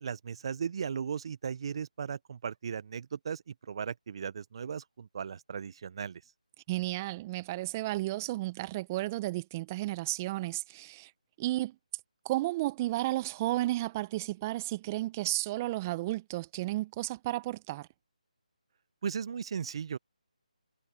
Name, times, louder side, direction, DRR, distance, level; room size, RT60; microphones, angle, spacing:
voice 1, 0.0-6.2 19.0-20.0, right 7 dB, 45° right, 1.2 m, -37 dB
voice 2, 6.7-11.1 11.4-11.7 12.2-17.9, right 17 dB, 20° right, 1.2 m, -33 dB
figure-of-eight pair, 155°, 4 cm